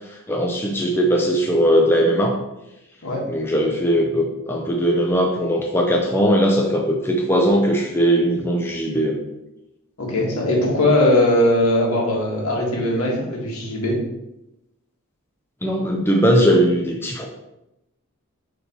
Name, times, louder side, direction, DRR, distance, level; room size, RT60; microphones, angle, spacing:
voice 1, 0.1-2.3 3.3-9.2 15.6-17.3, equal, 10° left, 0 dB, 0.5 m, -19 dB
voice 2, 10.0-14.0, left 1 dB, 75° left, -2 dB, 1.8 m, -19 dB
6.7 x 3.4 x 4.5 m, 0.91 s
head